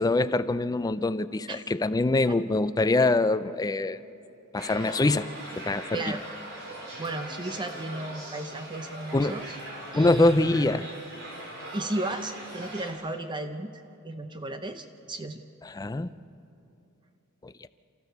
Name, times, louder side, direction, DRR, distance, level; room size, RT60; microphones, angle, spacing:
voice 1, 0.0-4.0 4.5-5.3 5.6-6.0 9.1-9.4 9.9-10.9 15.6-16.1 17.4-17.7, left 2 dB, 15° left, 13 dB, 0.4 m, -24 dB
sound 1, 4.6-12.9, right 1 dB, 60° right, 4.0 m, -40 dB
voice 2, 5.9-6.3 7.0-9.6 9.9-10.8 11.7-13.7 14.0-15.4, right 2 dB, 20° right, 8 dB, 0.7 m, -34 dB
28.5 x 14.0 x 6.7 m, 2.7 s
head